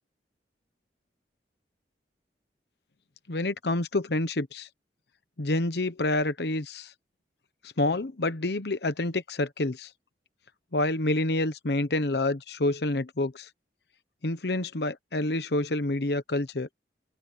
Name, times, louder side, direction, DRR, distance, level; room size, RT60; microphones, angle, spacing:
voice 1, 3.3-4.7 5.4-6.9 7.8-9.9 10.7-13.5 14.2-16.7, left 2 dB, 70° left, 1.0 m, -28 dB
open air
head